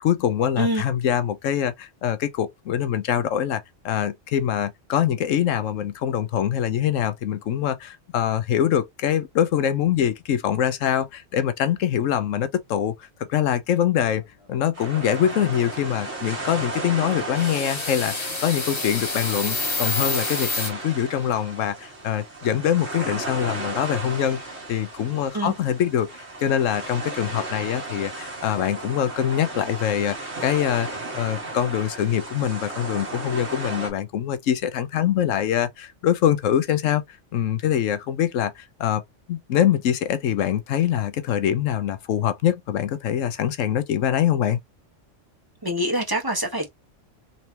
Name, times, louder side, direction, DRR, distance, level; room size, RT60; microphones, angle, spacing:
voice 1, 0.0-14.2 14.5-30.2 30.4-30.9 31.1-37.0 37.3-39.0 39.3-44.6, left 10 dB, 90° left, 1.1 m, -24 dB
sound 1, 14.7-33.9, right 2 dB, 65° right, 1.8 m, -34 dB
sound 2, 17.3-20.7, left 4 dB, 25° left, 0.8 m, -28 dB
voice 2, 45.6-46.7, right 1 dB, 20° right, 1.3 m, -25 dB
4.0 x 3.3 x 2.8 m
omnidirectional pair, 1.3 m